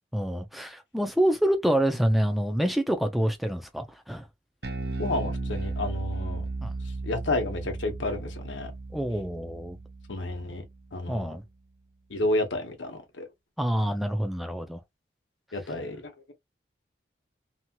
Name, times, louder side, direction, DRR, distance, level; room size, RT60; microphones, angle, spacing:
voice 1, 0.1-4.3 6.6-6.7 8.9-9.8 11.1-11.4 13.6-14.8, right 1 dB, ahead, 0.4 m, -27 dB
Bass guitar, 4.6-11.1, right 3 dB, 60° right, 0.5 m, -35 dB
voice 2, 5.0-6.5 6.8-8.7 10.1-10.6 10.9-11.4 12.1-13.3 15.5-16.3, left 2 dB, 90° left, 0.9 m, -31 dB
2.9 x 2.8 x 2.2 m
head